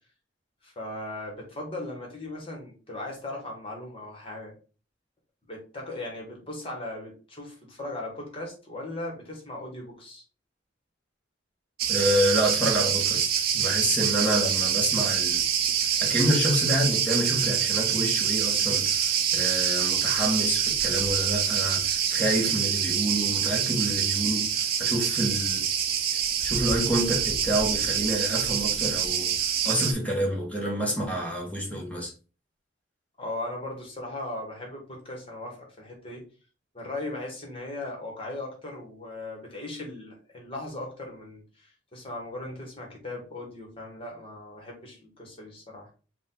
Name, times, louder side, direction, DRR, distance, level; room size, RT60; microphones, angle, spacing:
voice 1, 0.6-4.5 5.4-10.2 33.2-36.2 36.7-45.9, left 2 dB, 30° left, 1.4 m, -38 dB
Cricket, 11.8-29.9, right 8 dB, 50° right, 0.6 m, -26 dB
voice 2, 11.9-13.3 13.5-15.5 16.0-25.6 26.4-29.4 29.6-32.1, equal, 5° left, 1.4 m, -28 dB
5.1 x 2.5 x 3.9 m
head